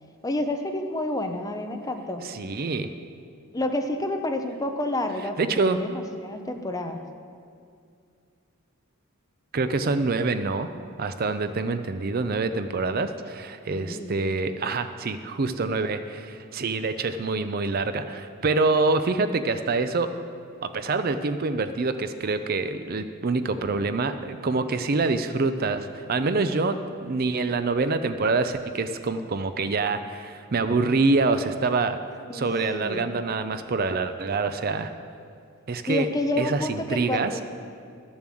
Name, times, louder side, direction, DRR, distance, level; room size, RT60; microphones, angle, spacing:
voice 1, 0.2-2.3 3.5-7.0 13.7-14.2 32.3-33.1 35.9-37.4, left 1 dB, 15° left, 5 dB, 0.7 m, -29 dB
voice 2, 2.2-2.9 5.4-5.8 9.5-10.7 11.0-20.1 20.6-32.0 32.3-34.9 35.7-36.1 36.4-37.3, right 3 dB, 45° right, 10 dB, 0.5 m, -26 dB
12.5 x 7.1 x 7.6 m, 2.3 s
head